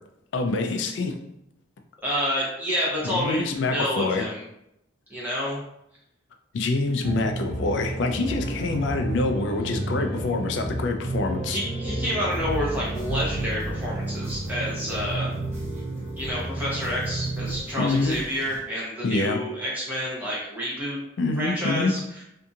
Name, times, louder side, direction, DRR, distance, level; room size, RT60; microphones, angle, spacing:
voice 1, 0.3-1.2 3.0-4.2 6.5-11.6 17.8-18.2 19.0-19.4 21.2-21.9, left 3 dB, 60° left, 5 dB, 0.3 m, -26 dB
voice 2, 2.0-4.4 5.1-5.6 11.5-15.3 16.2-21.0 21.4-22.0, equal, 10° right, -6 dB, 0.8 m, -29 dB
sound 1, 7.0-14.2, left 1 dB, 30° left, 1.0 m, -36 dB
sound 2, 7.0-17.6, right 3 dB, 75° right, 0.4 m, -32 dB
sound 3, 12.2-18.6, right 1 dB, 35° right, 1.0 m, -43 dB
2.7 x 2.6 x 2.4 m, 0.79 s
head